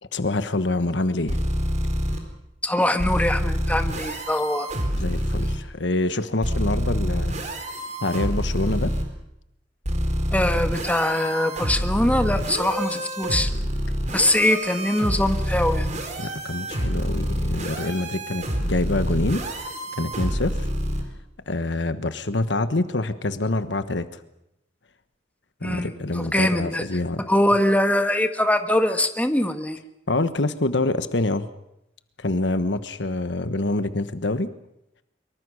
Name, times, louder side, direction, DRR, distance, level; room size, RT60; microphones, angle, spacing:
voice 1, 0.1-1.4 5.0-7.3 8.0-8.9 16.2-19.4 20.0-20.6 21.5-24.1 25.6-27.2 30.1-31.5 32.2-34.5, left 2 dB, 75° left, 12 dB, 1.3 m, -26 dB
sound 1, 1.3-2.2 3.0-5.6 6.4-9.0 9.8-21.0, equal, 40° right, 4.2 m, -27 dB
voice 2, 2.6-4.7 10.3-13.5 14.1-15.9 25.6-26.8 27.2-29.8, left 1 dB, 10° left, 7 dB, 1.6 m, -22 dB
24.5 x 23.5 x 6.4 m, 0.85 s
head